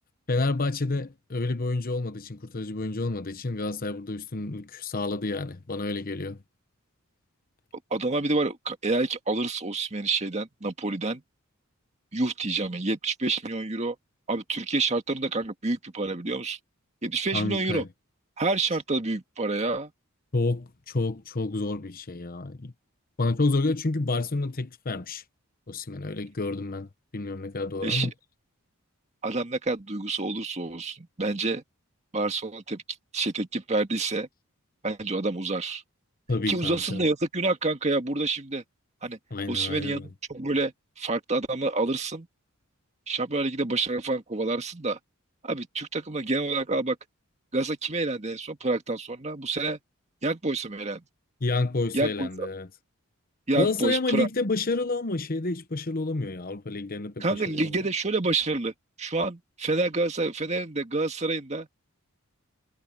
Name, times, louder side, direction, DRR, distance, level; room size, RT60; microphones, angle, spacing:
voice 1, 0.3-6.4 17.3-17.9 20.3-22.7 23.2-25.2 25.7-26.9 27.1-28.1 36.3-37.0 39.3-40.1 51.4-52.7 53.6-57.8, left 3 dB, 40° left, 1.0 m, -29 dB
voice 2, 7.9-11.2 12.1-14.0 14.3-16.6 17.0-17.8 18.4-19.9 27.8-28.1 29.2-31.6 32.1-32.8 33.1-34.3 34.8-35.8 36.5-38.6 39.0-39.2 39.5-42.3 43.1-45.0 45.4-47.0 47.5-49.8 50.2-51.0 51.9-52.5 53.5-54.3 57.2-58.7 59.0-61.7, right 3 dB, 30° right, 1.8 m, -28 dB
head